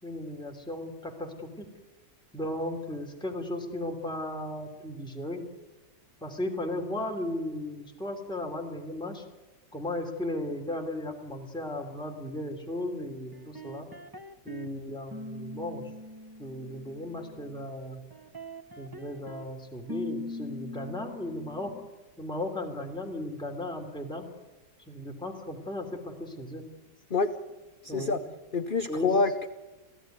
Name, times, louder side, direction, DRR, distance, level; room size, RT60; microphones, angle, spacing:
voice 1, 0.0-1.7 2.3-5.4 6.2-9.2 9.7-13.9 14.4-15.9 16.4-18.0 18.8-21.7 22.2-24.3 24.9-26.6 27.9-28.2 28.9-29.1, left 1 dB, ahead, 1 dB, 3.2 m, -36 dB
sound 1, 13.3-14.7 15.1-17.6 18.1-19.5 19.9-21.9, left 1 dB, 20° right, 0.7 m, -42 dB
voice 2, 27.8-28.2 28.5-29.5, left 3 dB, 40° left, 7 dB, 0.9 m, -26 dB
28.0 x 16.0 x 9.4 m, 1.1 s
omnidirectional pair, 1.8 m